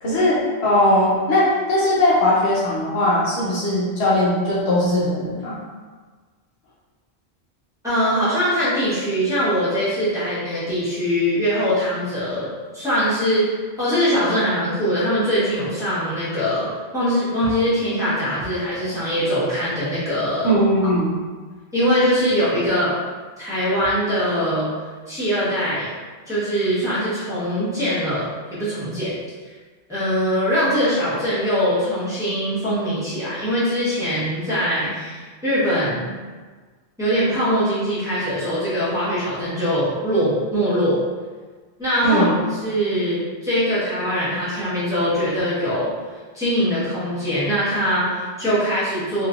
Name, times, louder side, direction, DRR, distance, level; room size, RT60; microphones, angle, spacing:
voice 1, 0.0-5.6 20.4-21.2 42.0-42.4, left 1 dB, 75° left, -7 dB, 1.1 m, -19 dB
voice 2, 7.8-12.5 12.7-20.5 21.7-22.9 23.4-24.7 25.1-25.9 26.3-29.1 29.9-36.1 37.0-41.0 41.8-42.2 42.6-45.9 46.3-49.3, equal, 5° right, -12 dB, 1.1 m, -22 dB
3.1 x 2.7 x 2.5 m, 1.4 s
omnidirectional pair, 1.1 m